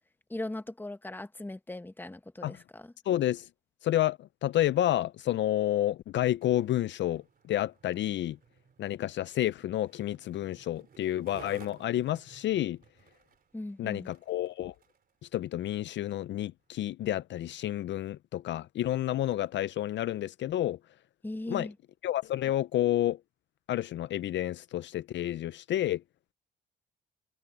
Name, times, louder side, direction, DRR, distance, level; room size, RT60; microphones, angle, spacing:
voice 1, 0.3-2.9 13.5-14.1 21.2-21.7, left 2 dB, 10° left, 1.3 m, -39 dB
voice 2, 3.1-3.5 3.8-8.4 8.8-12.8 13.8-14.7 15.3-20.8 21.5-21.7 22.0-23.2 23.7-26.0, left 13 dB, 65° left, 0.5 m, -30 dB
Skateboard, 6.3-15.1 15.7-15.8, right 7 dB, 50° right, 3.4 m, -56 dB
cardioid pair, 90°, 20 cm